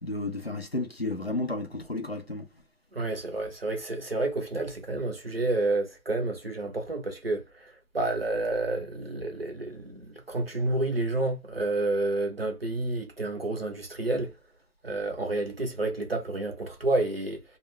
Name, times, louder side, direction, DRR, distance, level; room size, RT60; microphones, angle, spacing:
voice 1, 0.0-2.5, left 2 dB, 45° left, 0.4 m, -32 dB
voice 2, 2.9-14.3 14.8-17.4, right 2 dB, 40° right, 0.6 m, -30 dB
2.4 x 2.1 x 3.1 m
figure-of-eight pair, 175°, 45 cm